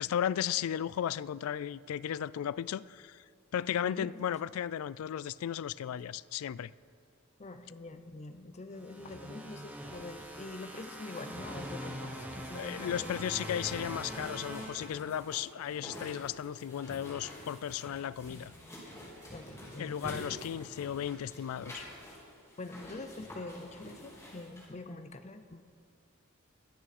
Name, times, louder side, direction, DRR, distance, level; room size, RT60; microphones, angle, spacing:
voice 1, 0.0-3.2 3.5-6.7 12.5-18.5 19.8-21.8, left 9 dB, 80° left, 0.3 m, -35 dB
voice 2, 7.4-13.8 19.3-20.3 22.6-25.6, left 2 dB, 30° left, 0.6 m, -45 dB
sound 1, 8.8-15.5, equal, 10° right, 1.2 m, -43 dB
sound 2, 12.4-24.7, equal, 15° left, 3.7 m, -48 dB
21.5 x 8.9 x 4.2 m
head